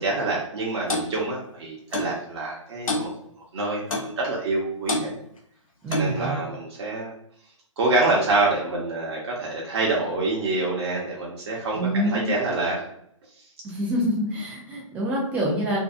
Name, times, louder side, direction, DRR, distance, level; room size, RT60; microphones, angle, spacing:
voice 1, 0.0-3.1 3.5-5.1 5.9-7.1 7.8-12.8, right 2 dB, 50° right, -4 dB, 0.7 m, -26 dB
Clock, 0.9-1.1 1.9-2.1 2.9-3.1 3.9-4.1 4.9-5.1 5.9-6.2, left 2 dB, 85° left, 0.6 m, -26 dB
voice 2, 5.8-6.4 11.7-12.3 13.6-15.8, right 1 dB, 10° right, -4 dB, 0.4 m, -26 dB
2.6 x 2.3 x 2.3 m, 0.71 s
figure-of-eight pair, 135°, 17 cm